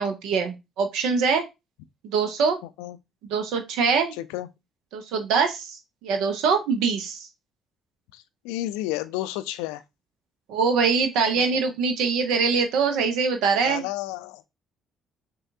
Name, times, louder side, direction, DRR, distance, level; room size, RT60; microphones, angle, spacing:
voice 1, 0.0-1.5 2.0-2.6 3.3-4.2 4.9-7.3 10.5-13.9, right 5 dB, 65° right, 0.7 m, -23 dB
voice 2, 4.1-4.5 8.1-9.8 11.4-11.5 13.6-14.4, left 15 dB, 70° left, 0.3 m, -31 dB
6.3 x 2.3 x 2.7 m
figure-of-eight pair, 45°, 0 cm